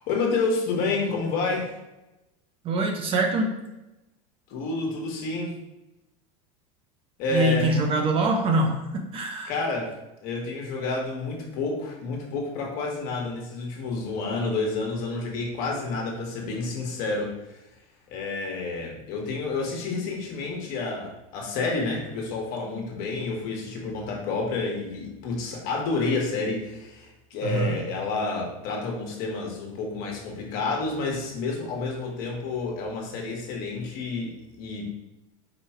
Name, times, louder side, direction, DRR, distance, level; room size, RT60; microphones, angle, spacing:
voice 1, 0.1-1.7 4.5-5.5 7.2-7.9 9.5-9.9 10.2-17.6 18.1-34.9, left 3 dB, 55° left, -1 dB, 1.4 m, -29 dB
voice 2, 2.6-3.5 7.3-9.5 27.4-27.8, right 2 dB, 30° right, 3 dB, 0.6 m, -24 dB
4.9 x 2.3 x 4.3 m, 0.97 s
supercardioid pair, 135°, 17 cm